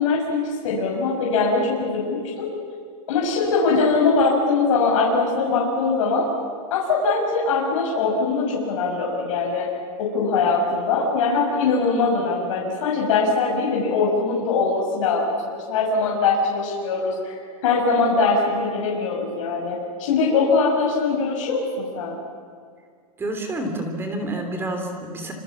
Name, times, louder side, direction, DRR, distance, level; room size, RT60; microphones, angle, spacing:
voice 1, 0.0-2.5 3.1-6.3 6.7-9.7 10.0-22.2, left 4 dB, 55° left, -2 dB, 6.2 m, -22 dB
voice 2, 23.2-25.3, right 1 dB, 10° right, 5 dB, 3.2 m, -28 dB
27.0 x 27.0 x 7.3 m, 2.1 s
supercardioid pair, 165°, 19 cm